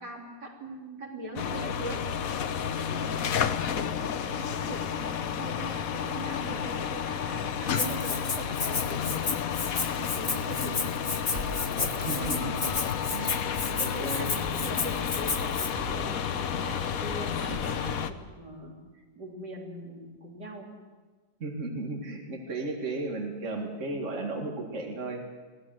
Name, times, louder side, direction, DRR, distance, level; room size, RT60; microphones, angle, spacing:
voice 1, 0.0-2.1 2.9-9.0 9.8-11.3 12.1-12.4 13.6-18.7 19.2-20.8, right 2 dB, 80° right, -1 dB, 3.9 m, -41 dB
sound 1, 1.4-18.1, left 8 dB, 60° left, 1.2 m, -31 dB
Rattle (instrument), 7.8-15.7, left 4 dB, 30° left, 1.0 m, -32 dB
voice 2, 10.5-10.9 12.1-12.7 13.1-13.5 13.8-14.3 17.3-17.4 21.4-25.3, right 2 dB, 45° right, 1 dB, 2.3 m, -35 dB
sound 2, 10.9-17.9, equal, 25° right, 2.8 m, -41 dB
22.5 x 17.0 x 7.8 m, 1.4 s
omnidirectional pair, 1.8 m